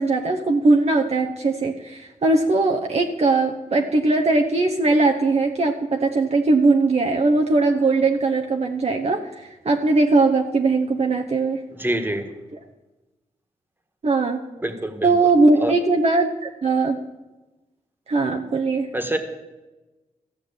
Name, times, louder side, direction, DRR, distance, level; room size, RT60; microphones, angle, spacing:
voice 1, 0.0-9.2 9.6-11.6 14.0-14.4 15.0-17.0 18.1-18.9, right 3 dB, 45° right, 3 dB, 0.9 m, -20 dB
voice 2, 11.7-12.2 14.6-15.1 15.5-15.7 18.9-19.2, right 1 dB, 15° right, 6 dB, 1.7 m, -25 dB
14.0 x 6.0 x 8.5 m, 1.1 s
cardioid pair, 65°, 14 cm